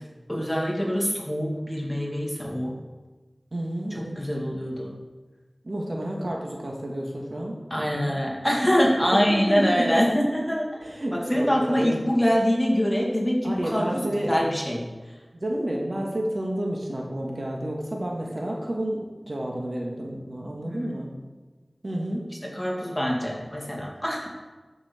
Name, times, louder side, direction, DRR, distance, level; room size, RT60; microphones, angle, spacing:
voice 1, 0.3-2.7 3.9-4.9 7.7-10.7 11.1-14.9 20.6-20.9 22.5-24.3, equal, 10° left, -2 dB, 2.3 m, -24 dB
voice 2, 3.5-4.2 5.6-8.1 9.1-10.0 10.8-12.0 13.4-14.4 15.3-21.1 21.8-22.2, right 1 dB, 60° right, -2 dB, 1.9 m, -30 dB
13.0 x 6.2 x 4.5 m, 1.3 s
wide cardioid pair, 50°, 0 cm